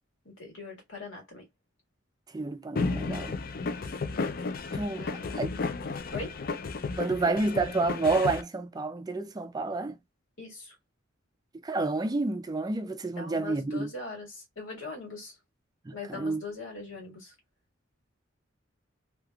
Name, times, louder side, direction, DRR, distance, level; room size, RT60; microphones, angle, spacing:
voice 1, 0.3-1.5 3.5-3.8 5.0-5.9 6.1-6.4 10.4-10.7 13.2-15.4 15.9-17.3, left 3 dB, 85° left, 1.9 m, -41 dB
voice 2, 2.3-3.3 4.7-5.5 7.0-10.0 11.6-13.9 15.9-16.4, right 3 dB, 20° right, 0.3 m, -29 dB
sound 1, 2.8-8.4, left 4 dB, 50° left, 0.4 m, -33 dB
3.4 x 2.8 x 2.3 m
head